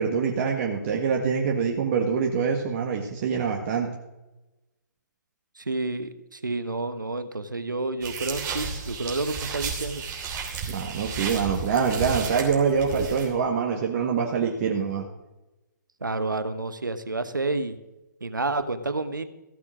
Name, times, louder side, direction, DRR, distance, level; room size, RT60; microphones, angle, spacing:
voice 1, 0.0-3.9 10.7-15.1, right 6 dB, 45° right, 0 dB, 1.7 m, -25 dB
voice 2, 5.6-10.0 16.0-17.8 18.2-19.2, right 2 dB, 90° right, 10 dB, 1.3 m, -29 dB
sound 1, 8.0-13.3, right 6 dB, 25° right, 3.1 m, -33 dB
15.0 x 8.3 x 6.2 m, 1.0 s
figure-of-eight pair, 130°, 10 cm